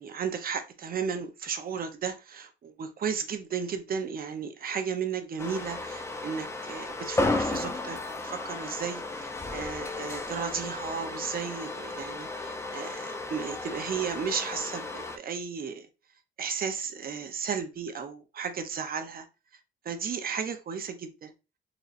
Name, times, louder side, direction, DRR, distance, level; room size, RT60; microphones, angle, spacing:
voice 1, 0.0-15.9 16.4-19.3 19.8-21.3, right 6 dB, 45° right, 0.7 m, -34 dB
sound 1, 5.4-15.2, left 2 dB, 15° left, 0.5 m, -34 dB
4.1 x 2.9 x 2.5 m
cardioid pair, 90°, 20 cm